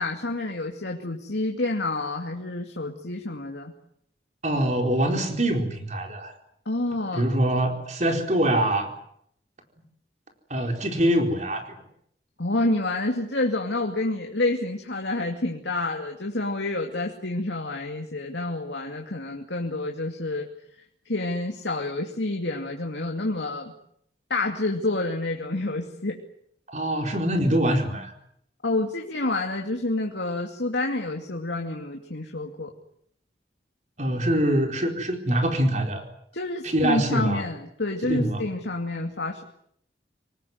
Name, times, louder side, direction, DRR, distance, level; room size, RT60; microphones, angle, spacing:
voice 1, 0.0-3.7 6.7-7.2 12.4-20.5 21.1-23.7 24.3-26.2 28.6-32.7 36.3-39.4, left 2 dB, 85° left, 2 dB, 2.5 m, -28 dB
voice 2, 4.4-6.3 7.1-8.9 10.5-11.8 26.7-28.1 34.0-36.0 36.6-37.4 38.0-38.4, right 1 dB, 40° right, 4 dB, 4.5 m, -24 dB
25.5 x 19.0 x 9.5 m, 0.69 s
head